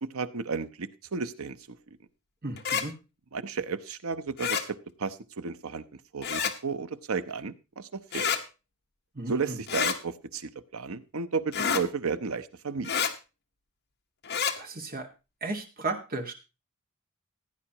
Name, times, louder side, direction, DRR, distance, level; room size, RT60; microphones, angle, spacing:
voice 1, 0.0-1.6 3.3-4.6 5.0-5.8 6.1-8.3 9.3-12.9, right 5 dB, 90° right, 13 dB, 0.8 m, -33 dB
voice 2, 2.4-2.9 9.1-9.6 14.6-15.1 15.4-16.3, right 3 dB, 45° right, 4 dB, 1.8 m, -34 dB
sound 1, 2.6-2.8 4.4-4.6 6.2-6.5 8.1-8.4 9.7-10.0 11.5-11.8 12.8-13.1 14.2-14.5, left 7 dB, 50° left, 1.2 m, -28 dB
16.0 x 9.8 x 2.9 m, 0.29 s
head